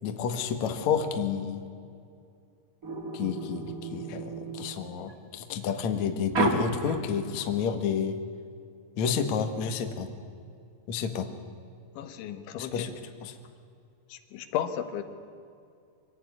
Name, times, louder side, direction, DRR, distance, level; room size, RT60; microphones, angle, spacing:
voice 1, 0.0-1.6 3.1-8.2 9.0-10.1 10.9-11.3 12.6-12.9 13.2-13.4, left 7 dB, 60° left, 6 dB, 2.0 m, -30 dB
sound 1, 2.8-5.1 6.3-7.5, right 3 dB, 40° right, 1.2 m, -31 dB
voice 2, 12.0-12.9 14.1-15.0, left 10 dB, 80° left, 8 dB, 3.7 m, -34 dB
25.0 x 17.5 x 9.6 m, 2.4 s
omnidirectional pair, 5.4 m